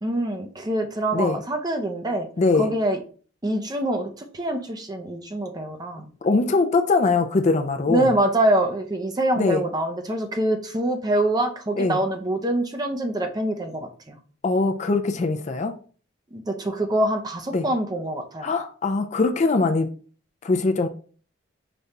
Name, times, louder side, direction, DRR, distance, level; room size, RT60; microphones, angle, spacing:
voice 1, 0.0-2.3 2.5-3.0 3.4-6.1 7.9-14.2 16.3-18.5, right 1 dB, 20° right, 0.5 m, -25 dB
voice 2, 2.4-2.7 6.2-8.1 9.4-9.6 11.8-12.0 14.4-15.8 17.5-17.7 18.4-19.9 20.4-20.9, left 3 dB, 35° left, 0.4 m, -22 dB
5.1 x 2.3 x 4.1 m
head